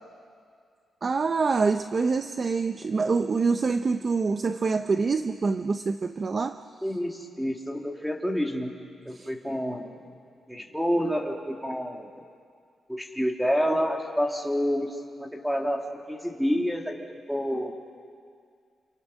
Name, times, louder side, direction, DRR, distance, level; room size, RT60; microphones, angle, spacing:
voice 1, 1.0-6.6 9.2-9.3, right 4 dB, 35° right, 9 dB, 0.6 m, -25 dB
voice 2, 6.8-8.7 9.1-10.0 10.5-12.1 12.9-17.0 17.3-17.8, equal, ahead, 1 dB, 2.3 m, -28 dB
29.5 x 28.5 x 6.3 m, 2.2 s
wide cardioid pair, 155°, 0 cm